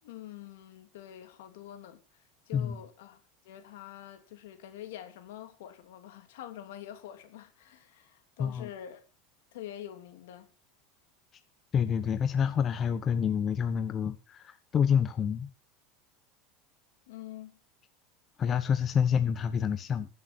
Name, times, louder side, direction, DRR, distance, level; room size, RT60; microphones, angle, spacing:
voice 1, 0.0-9.0 9.5-10.5 17.1-17.5, left 11 dB, 80° left, 2.9 m, -46 dB
voice 2, 8.4-8.7 11.7-15.5 18.4-20.1, left 7 dB, 35° left, 1.1 m, -28 dB
15.0 x 7.5 x 5.9 m
supercardioid pair, 105°, 0 cm